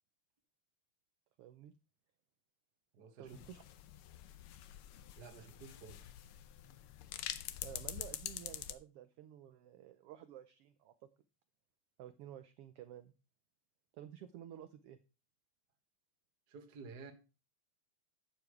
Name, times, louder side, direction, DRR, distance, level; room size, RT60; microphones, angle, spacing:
voice 1, 1.4-1.7 3.2-3.7 7.6-11.1 12.0-13.1 13.9-15.0, right 11 dB, 80° right, 1.3 m, -52 dB
voice 2, 2.9-3.4 5.2-6.1 16.5-17.1, right 4 dB, 50° right, 1.4 m, -52 dB
sound 1, 3.3-8.7, left 12 dB, 90° left, 1.2 m, -46 dB
10.0 x 6.9 x 4.7 m
omnidirectional pair, 3.3 m